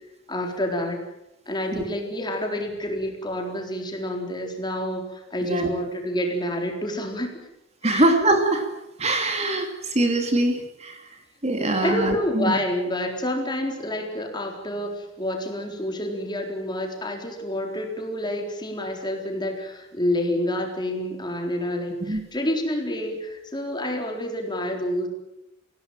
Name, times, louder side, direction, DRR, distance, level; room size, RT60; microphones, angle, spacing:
voice 1, 0.3-1.0 1.5-7.4 7.9-8.0 11.6-25.1, left 1 dB, 20° left, 2 dB, 4.1 m, -28 dB
voice 2, 7.8-8.7 9.0-11.1 11.4-12.6 22.1-22.2, right 2 dB, 30° right, 5 dB, 2.7 m, -23 dB
26.0 x 17.0 x 9.0 m, 0.89 s
head